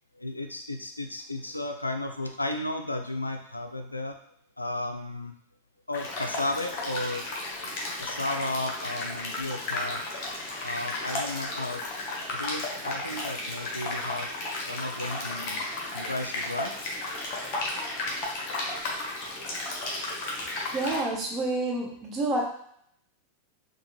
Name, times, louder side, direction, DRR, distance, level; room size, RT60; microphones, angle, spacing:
voice 1, 0.2-4.2 4.6-5.3 5.9-7.2 8.0-10.0 10.6-11.8 12.3-15.7 15.9-16.7, left 2 dB, 85° left, 5 dB, 0.4 m, -34 dB
sound 1, 5.9-21.0, left 2 dB, 40° left, 1.1 m, -34 dB
voice 2, 20.7-22.4, right 2 dB, 25° right, -1 dB, 1.0 m, -28 dB
4.4 x 2.4 x 3.1 m, 0.68 s
figure-of-eight pair, 90°, 0 cm